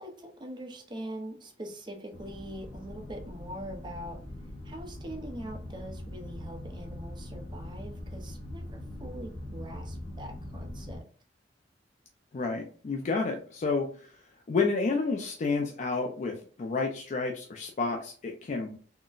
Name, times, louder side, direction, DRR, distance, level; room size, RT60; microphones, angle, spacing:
voice 1, 0.0-4.2 4.6-11.1, right 1 dB, 25° right, 3 dB, 0.5 m, -43 dB
sound 1, 2.1-11.0, left 1 dB, 80° left, 0.7 m, -42 dB
voice 2, 12.3-14.1 14.5-18.8, left 4 dB, 40° left, 3 dB, 0.4 m, -30 dB
3.8 x 2.1 x 2.3 m, 0.42 s
head